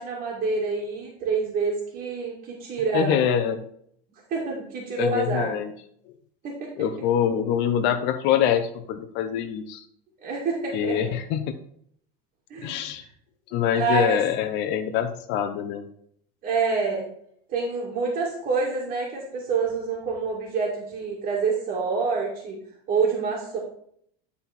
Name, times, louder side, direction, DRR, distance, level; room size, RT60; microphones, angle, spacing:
voice 1, 0.0-3.2 4.3-5.5 6.4-6.7 10.2-11.1 12.5-13.0 13.8-14.2 16.4-17.1 17.5-22.6 22.9-23.6, right 4 dB, 40° right, -4 dB, 2.1 m, -27 dB
voice 2, 2.9-3.6 5.0-5.7 6.8-9.8 10.7-11.5 12.6-13.0 13.5-15.8, left 9 dB, 60° left, 8 dB, 0.8 m, -24 dB
10.0 x 4.2 x 4.3 m, 0.67 s
supercardioid pair, 125°, 20 cm